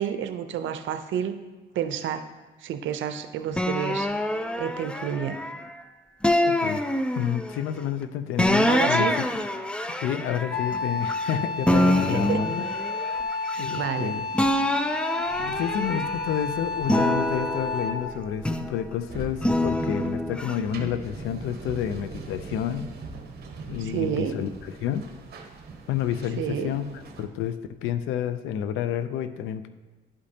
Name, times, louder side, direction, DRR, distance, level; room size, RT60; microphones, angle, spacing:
voice 1, 0.0-1.4 1.7-2.2 2.6-5.4 8.7-9.2 12.1-12.4 13.5-14.1 23.8-24.4 26.4-26.7, right 9 dB, 75° right, 9 dB, 0.6 m, -30 dB
sound 1, 3.5-5.7 6.2-7.6 8.4-11.3 11.7-14.0 14.3-16.4 16.8-18.8 19.4-20.6, left 1 dB, 5° left, 0.4 m, -26 dB
voice 2, 6.5-6.8 7.2-9.1 10.0-12.7 13.6-14.3 15.4-22.9 23.7-25.1 25.9-29.7, left 10 dB, 90° left, 11 dB, 0.5 m, -30 dB
Wind instrument woodwind instrument, 10.5-18.1, left 3 dB, 50° left, 0.8 m, -31 dB
sound 2, 15.3-27.3, right 4 dB, 55° right, 0.9 m, -42 dB
11.0 x 5.1 x 2.8 m, 1.2 s
cardioid pair, 90°, 20 cm